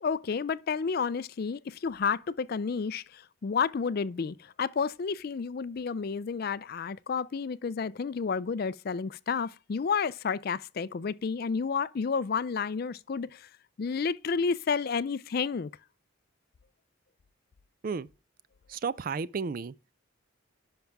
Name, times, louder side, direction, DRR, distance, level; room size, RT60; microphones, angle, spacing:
voice 1, 0.0-13.5 13.8-15.7, left 5 dB, 45° left, 0.4 m, -31 dB
voice 2, 18.7-19.7, right 5 dB, 40° right, 0.3 m, -32 dB
10.5 x 5.9 x 3.4 m
head